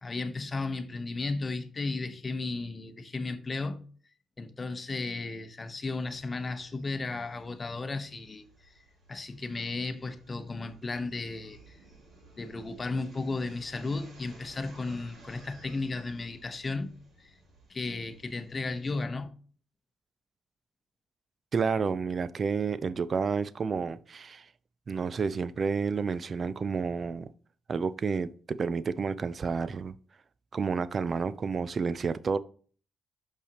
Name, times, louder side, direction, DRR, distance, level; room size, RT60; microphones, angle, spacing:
voice 1, 0.0-3.8 4.4-8.7 9.1-11.8 12.4-16.9 17.2-17.4 17.7-19.3, left 3 dB, 30° left, 0.8 m, -34 dB
sound 1, 5.9-19.0, right 2 dB, 60° right, 3.1 m, -57 dB
voice 2, 21.5-24.5 24.9-27.3 27.7-29.9 30.5-32.4, right 5 dB, 40° right, 0.4 m, -30 dB
6.5 x 5.5 x 2.9 m
cardioid pair, 90°, 0 cm